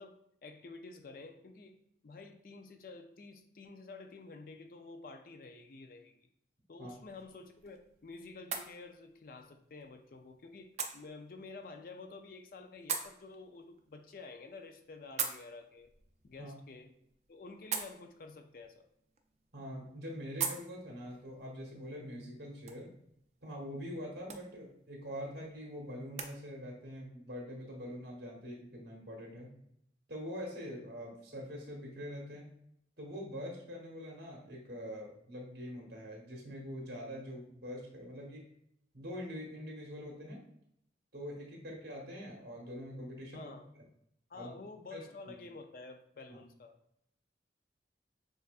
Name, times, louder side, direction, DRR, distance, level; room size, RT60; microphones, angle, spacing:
voice 1, 0.0-6.3 6.7-15.9 16.2-16.9 17.3-18.9 43.3-43.7 44.3-46.8, left 3 dB, 50° left, 6 dB, 0.4 m, -50 dB
sound 1, 6.8-26.3, right 7 dB, 40° right, 0.4 m, -45 dB
voice 2, 19.5-22.9 23.4-29.5 30.1-32.5 33.0-38.5 38.9-40.4 41.1-43.5 44.3-44.5 44.9-45.3 46.3-46.4, equal, 60° right, -1 dB, 1.2 m, -44 dB
6.6 x 2.4 x 2.4 m, 0.74 s
head